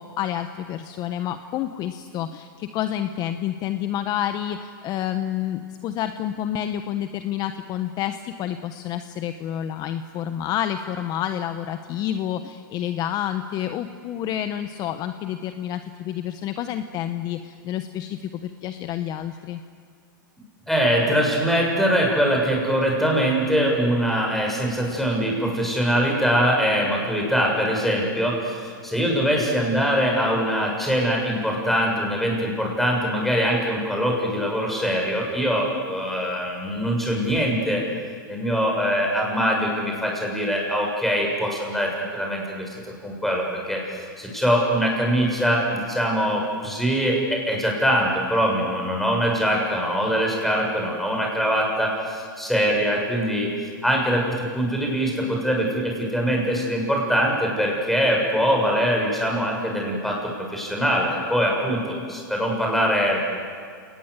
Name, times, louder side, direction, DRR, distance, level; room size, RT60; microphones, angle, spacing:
voice 1, 0.0-19.6, left 11 dB, 35° left, 9 dB, 1.1 m, -29 dB
voice 2, 20.7-37.8 38.3-53.5 53.8-63.2, equal, ahead, -1 dB, 6.9 m, -23 dB
29.5 x 19.5 x 8.3 m, 2.1 s
hypercardioid pair, 130°, 11 cm